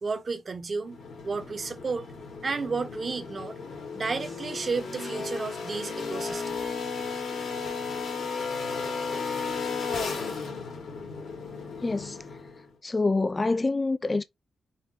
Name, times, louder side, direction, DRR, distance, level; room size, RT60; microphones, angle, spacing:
voice 1, 0.0-1.0 1.2-2.1 2.4-3.6 3.9-6.6, right 4 dB, 40° right, 1.0 m, -32 dB
sound 1, 0.8-12.7, left 4 dB, 75° left, 2.2 m, -34 dB
voice 2, 11.8-12.2 12.8-14.2, left 3 dB, 25° left, 0.4 m, -26 dB
5.7 x 2.2 x 3.6 m
cardioid pair, 110°, 0 cm